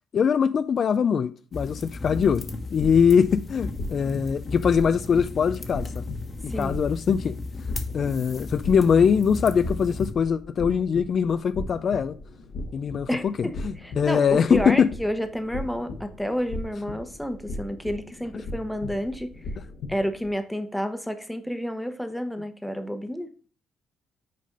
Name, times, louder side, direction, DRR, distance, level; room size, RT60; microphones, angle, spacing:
voice 1, 0.1-6.0 6.4-7.3 7.9-12.1 12.7-14.9 18.3-18.4, left 7 dB, 55° left, 0.4 m, -22 dB
sound 1, 1.5-10.1, left 3 dB, 30° left, 1.1 m, -35 dB
sound 2, 2.0-20.3, left 2 dB, 85° left, 1.4 m, -38 dB
voice 2, 6.5-6.8 13.1-19.3 19.9-23.3, equal, 5° left, 0.9 m, -30 dB
6.3 x 4.2 x 5.1 m
cardioid pair, 90°, 0 cm